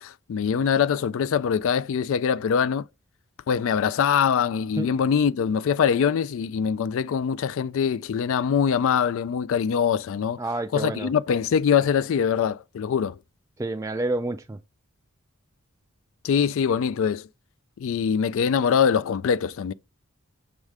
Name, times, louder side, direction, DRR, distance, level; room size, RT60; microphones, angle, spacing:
voice 1, 0.0-2.8 3.5-10.4 10.7-13.2 16.2-17.3 17.8-19.7, left 7 dB, 70° left, 0.3 m, -23 dB
voice 2, 10.4-11.1 13.6-14.6, right 2 dB, 15° right, 0.3 m, -28 dB
6.4 x 4.7 x 3.5 m
head